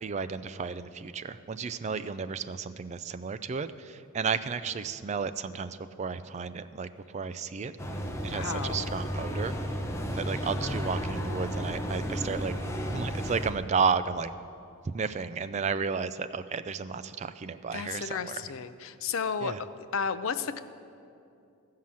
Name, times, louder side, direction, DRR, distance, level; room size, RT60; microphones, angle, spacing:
voice 1, 0.0-7.7 8.2-9.8 10.1-12.5 12.9-14.3 14.8-18.4 19.4-19.6, right 5 dB, 30° right, 12 dB, 0.3 m, -33 dB
sound 1, 7.8-13.5, equal, 10° left, 0.7 m, -33 dB
voice 2, 8.3-8.9 17.7-19.7 19.9-20.6, left 6 dB, 65° left, 12 dB, 0.5 m, -33 dB
14.5 x 5.6 x 7.5 m, 2.6 s
head